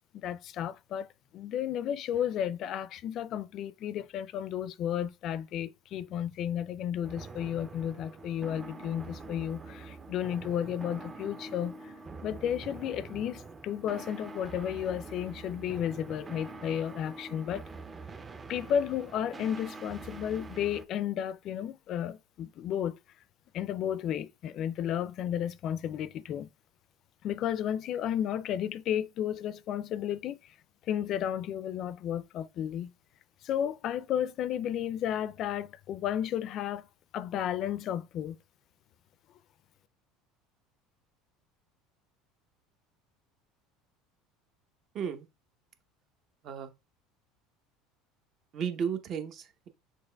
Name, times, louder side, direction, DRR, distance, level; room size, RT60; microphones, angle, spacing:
voice 1, 0.1-1.1 1.3-11.9 12.2-17.6 18.5-23.0 23.5-26.5 27.2-30.4 30.9-32.9 33.4-36.9 37.1-38.4, left 10 dB, 55° left, 0.4 m, -33 dB
sound 1, 7.0-20.8, right 3 dB, 25° right, 0.6 m, -45 dB
voice 2, 44.9-45.3 46.4-46.7 48.5-49.7, right 7 dB, 50° right, 0.8 m, -34 dB
6.5 x 3.2 x 2.3 m
hypercardioid pair, 85°, 0 cm